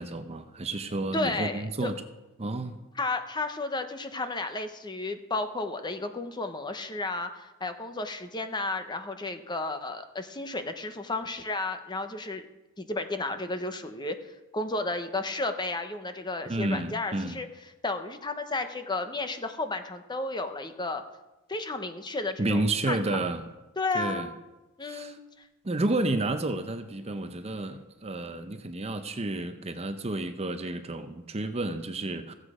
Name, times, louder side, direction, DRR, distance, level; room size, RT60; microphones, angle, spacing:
voice 1, 0.0-1.9 2.4-2.8 16.5-17.4 22.4-23.5 23.9-24.3 24.8-25.2 25.6-32.3, right 2 dB, 30° right, 9 dB, 0.7 m, -31 dB
voice 2, 1.1-1.9 3.0-12.5 12.8-14.2 14.5-17.5 17.8-21.0 21.5-23.2 23.8-24.3 24.8-25.2, left 2 dB, 20° left, 8 dB, 0.9 m, -32 dB
15.5 x 8.1 x 5.0 m, 1.1 s
head